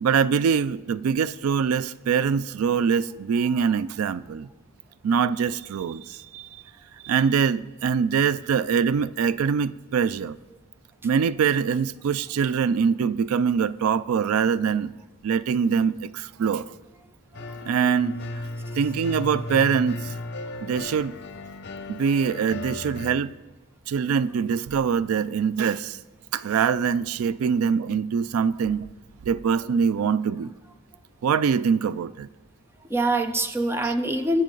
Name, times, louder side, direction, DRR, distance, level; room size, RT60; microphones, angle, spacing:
voice 1, 0.0-4.5 5.0-6.5 7.0-10.4 11.0-14.9 15.2-16.7 17.6-18.1 18.8-20.2 20.6-21.1 21.9-23.3 23.9-26.0 26.3-28.9 29.2-30.5 31.2-32.3 33.8-33.9, right 6 dB, 85° right, 0.3 m, -23 dB
sound 1, 17.3-23.2, left 2 dB, 55° left, 0.9 m, -35 dB
voice 2, 32.9-34.4, right 1 dB, 10° right, 0.6 m, -25 dB
20.5 x 7.2 x 3.9 m
head